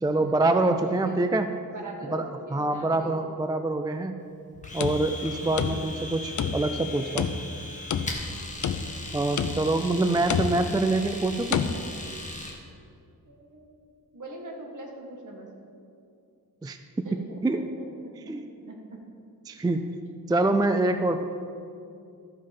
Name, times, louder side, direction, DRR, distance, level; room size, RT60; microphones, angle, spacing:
voice 1, 0.0-1.5 2.1-4.2 4.7-7.3 9.1-11.7 16.6-17.6 18.3-18.4 19.5-19.9 20.3-21.2, right 2 dB, 10° right, 8 dB, 0.3 m, -25 dB
voice 2, 1.7-2.2 2.5-3.2 5.4-5.7 13.2-13.7 14.1-15.5 17.0-18.4 18.7-19.0 19.8-19.9, right 2 dB, 55° right, 0 dB, 1.8 m, -42 dB
sound 1, 4.6-6.1 6.4-6.9 7.2-8.3 8.6-9.1 9.4-9.8 10.3-10.8 11.5-11.7, left 7 dB, 55° left, 0.5 m, -29 dB
Domestic sounds home sounds, 4.6-12.6, left 2 dB, 20° left, 1.3 m, -39 dB
13.5 x 5.4 x 5.3 m, 2.5 s
wide cardioid pair, 130°, 37 cm